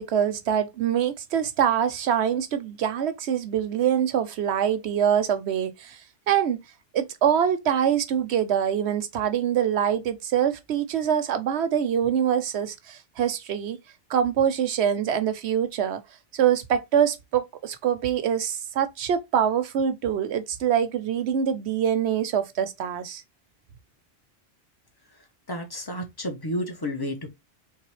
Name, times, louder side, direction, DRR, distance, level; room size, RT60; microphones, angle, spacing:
voice 1, 0.0-6.0 6.3-6.6 6.9-13.8 14.1-16.0 16.3-23.2, right 9 dB, 85° right, 1.0 m, -24 dB
voice 2, 25.5-27.3, equal, 20° left, 1.1 m, -31 dB
3.8 x 3.5 x 3.1 m
omnidirectional pair, 1.1 m